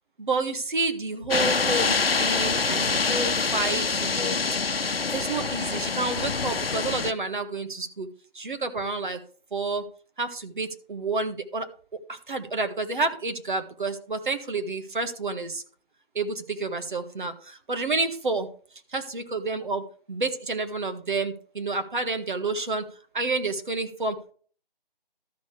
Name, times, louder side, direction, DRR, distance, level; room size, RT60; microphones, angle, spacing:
voice 1, 0.2-4.4 5.1-8.1 8.3-9.2 9.5-9.8 10.2-11.7 12.1-15.6 16.2-18.5 18.9-22.9 23.1-24.3, right 3 dB, 55° right, 7 dB, 1.7 m, -29 dB
sound 1, 1.3-7.1, left 4 dB, 80° left, 0.8 m, -25 dB
13.0 x 6.4 x 3.4 m, 0.43 s
figure-of-eight pair, 155°, 29 cm